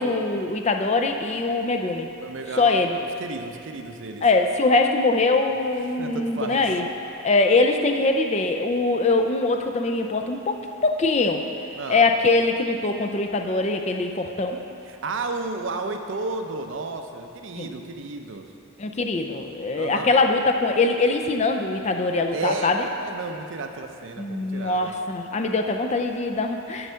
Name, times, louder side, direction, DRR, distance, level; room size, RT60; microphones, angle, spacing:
voice 1, 0.0-2.1 2.6-3.0 4.2-6.9 7.2-11.4 11.9-14.6 17.6-17.7 18.8-22.8 24.2-26.9, left 3 dB, 30° left, 4 dB, 0.4 m, -22 dB
voice 2, 2.2-2.8 3.2-4.2 6.0-6.6 11.8-12.0 14.8-18.5 19.7-20.1 22.3-24.9, right 3 dB, 60° right, 5 dB, 0.6 m, -32 dB
7.8 x 6.2 x 5.6 m, 2.7 s
head